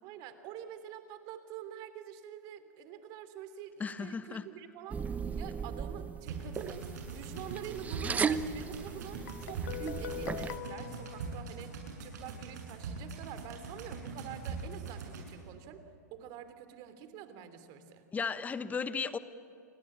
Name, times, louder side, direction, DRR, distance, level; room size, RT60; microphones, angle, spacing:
voice 1, 0.0-5.0 5.4-11.7 12.0-15.8 16.1-18.0, right 9 dB, 45° right, 10 dB, 3.0 m, -46 dB
voice 2, 3.8-4.4 18.1-19.2, left 5 dB, 15° left, 14 dB, 1.1 m, -35 dB
sound 1, 4.9-10.6, right 5 dB, 15° right, 0.9 m, -37 dB
sound 2, 6.2-15.3, right 5 dB, 65° right, 7.6 m, -42 dB
Guitar, 9.3-12.1, left 16 dB, 60° left, 0.9 m, -44 dB
28.5 x 22.5 x 8.7 m, 2.5 s
hypercardioid pair, 115°, 10 cm